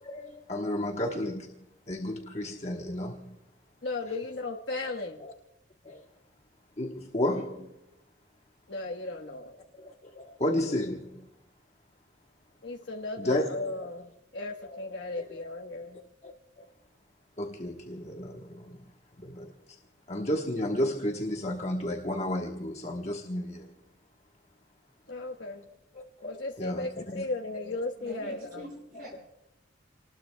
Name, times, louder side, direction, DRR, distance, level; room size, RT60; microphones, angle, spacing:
voice 1, 0.0-1.5 1.9-3.4 5.2-5.3 5.8-6.0 6.8-7.7 9.8-11.3 13.2-13.7 14.6-14.9 15.9-16.3 16.6-16.7 17.4-18.8 19.2-19.5 20.1-23.7 25.9-27.2 27.6-27.7 28.5-28.6, left 1 dB, 35° left, 1.2 m, -33 dB
voice 2, 3.8-5.3 8.7-9.6 12.6-16.0 25.1-25.7 26.2-28.6, left 2 dB, 65° left, 1.3 m, -36 dB
voice 3, 28.0-29.2, equal, 50° right, 7.6 m, -45 dB
29.0 x 20.0 x 2.3 m
head